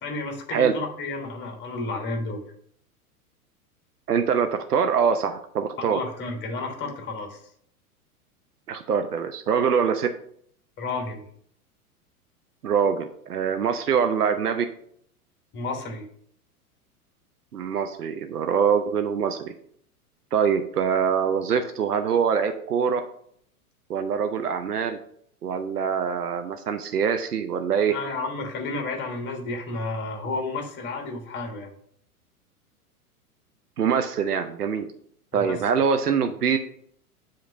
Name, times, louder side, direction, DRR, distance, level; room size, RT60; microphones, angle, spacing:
voice 1, 0.0-2.4 5.8-7.4 10.8-11.2 15.5-16.0 27.9-31.7 35.3-35.6, left 3 dB, 25° left, 3 dB, 1.3 m, -31 dB
voice 2, 4.1-6.0 8.7-10.1 12.6-14.7 17.5-19.5 20.3-23.0 23.9-25.0 25.4-27.9 33.8-34.9 35.3-36.6, right 7 dB, 80° right, 7 dB, 0.6 m, -24 dB
7.4 x 2.9 x 4.9 m, 0.65 s
figure-of-eight pair, 95°, 45 cm